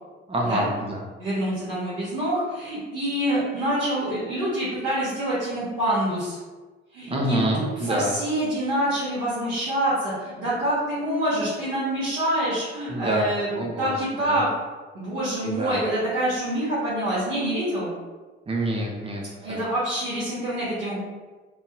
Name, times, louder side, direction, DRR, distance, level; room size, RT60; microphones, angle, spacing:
voice 1, 0.3-1.0 7.1-8.2 12.9-13.3 13.5-14.4 15.4-15.8 18.5-19.2 19.5-19.6, right 1 dB, 20° right, -1 dB, 0.7 m, -27 dB
voice 2, 1.2-6.4 6.9-13.5 13.8-14.4 14.9-17.9 19.4-21.0, right 1 dB, 60° right, -11 dB, 1.2 m, -26 dB
3.1 x 2.7 x 2.2 m, 1.3 s
figure-of-eight pair, 45°, 32 cm